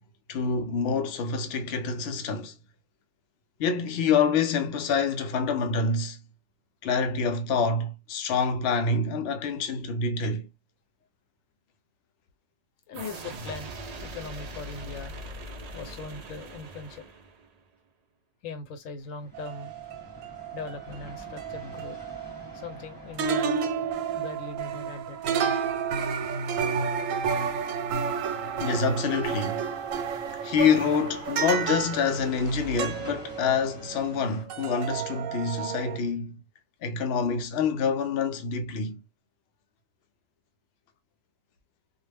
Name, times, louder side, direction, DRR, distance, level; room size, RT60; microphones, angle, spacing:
voice 1, 0.3-2.5 3.6-6.2 6.8-10.5 28.6-29.7 30.4-36.4 36.8-39.0, left 5 dB, 65° left, 0.7 m, -26 dB
voice 2, 12.9-13.8 14.0-15.1 15.7-17.1 18.4-19.8 20.5-22.0 22.5-23.6 24.1-25.4, left 4 dB, 85° left, 1.0 m, -40 dB
sound 1, 12.9-17.6, right 1 dB, 60° right, 0.4 m, -41 dB
sound 2, 18.8-34.4, left 1 dB, 20° left, 0.9 m, -48 dB
sound 3, 19.3-22.9 23.2-34.2 34.5-36.0, right 6 dB, 85° right, 1.0 m, -31 dB
2.3 x 2.0 x 3.3 m
omnidirectional pair, 1.3 m